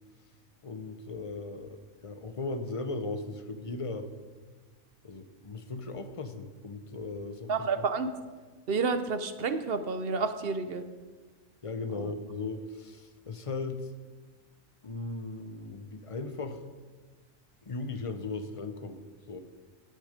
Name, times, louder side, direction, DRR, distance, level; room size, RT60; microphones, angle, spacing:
voice 1, 0.6-4.1 5.0-7.5 7.8-7.9 11.6-13.9 14.8-16.6 17.6-19.0 19.3-19.4, left 3 dB, 30° left, 8 dB, 0.6 m, -37 dB
voice 2, 7.5-8.1 8.7-10.8 11.9-12.1, right 4 dB, 50° right, 9 dB, 0.8 m, -30 dB
17.0 x 6.6 x 5.1 m, 1.4 s
omnidirectional pair, 1.4 m